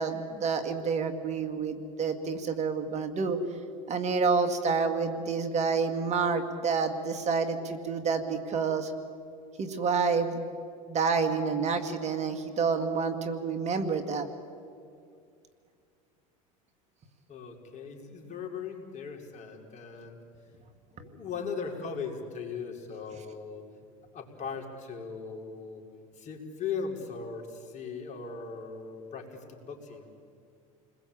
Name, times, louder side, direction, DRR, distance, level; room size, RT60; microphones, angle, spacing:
voice 1, 0.0-3.4 3.9-8.9 9.6-10.4 10.9-14.3, right 5 dB, 40° right, 8 dB, 2.5 m, -28 dB
voice 2, 17.3-20.2 20.9-23.6 24.1-25.8 26.2-30.1, left 5 dB, 45° left, 2 dB, 5.2 m, -38 dB
29.5 x 21.0 x 8.9 m, 2.3 s
hypercardioid pair, 90°, 17 cm